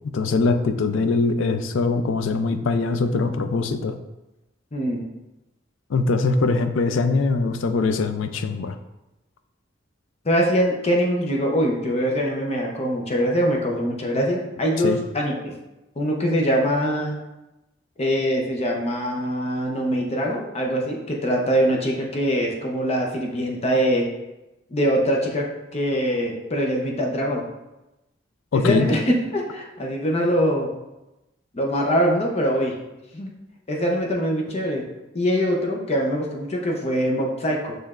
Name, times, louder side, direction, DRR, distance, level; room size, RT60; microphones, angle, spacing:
voice 1, 0.1-4.0 5.9-8.7 14.8-15.0 28.5-28.9, left 3 dB, 75° left, 8 dB, 0.4 m, -22 dB
voice 2, 4.7-5.0 10.2-15.5 16.0-17.2 18.0-24.1 24.7-25.5 25.7-27.4 28.5-29.0 29.3-30.7 31.5-32.7 33.1-33.3 33.7-34.8 35.1-37.8, equal, 35° left, 0 dB, 0.6 m, -23 dB
6.5 x 3.2 x 2.4 m, 0.97 s
head